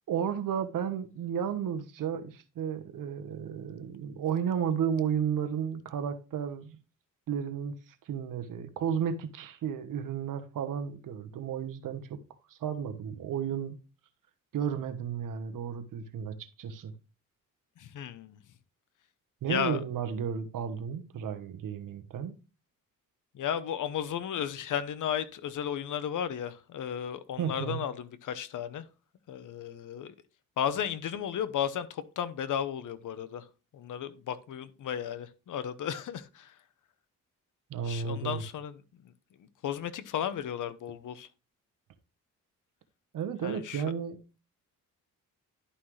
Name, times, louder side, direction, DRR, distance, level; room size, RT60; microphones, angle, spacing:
voice 1, 0.1-6.8 7.3-12.2 12.5-13.8 14.5-16.9 19.4-22.3 27.4-27.8 37.7-38.4 43.1-44.2, right 8 dB, 75° right, 1.2 m, -33 dB
voice 2, 17.8-18.4 19.5-19.8 23.3-28.8 29.3-30.1 30.6-33.5 33.7-36.6 37.8-38.7 39.0-39.1 39.6-41.3 43.4-43.8, left 9 dB, 70° left, 0.9 m, -34 dB
11.5 x 5.7 x 3.2 m
cardioid pair, 110°, 33 cm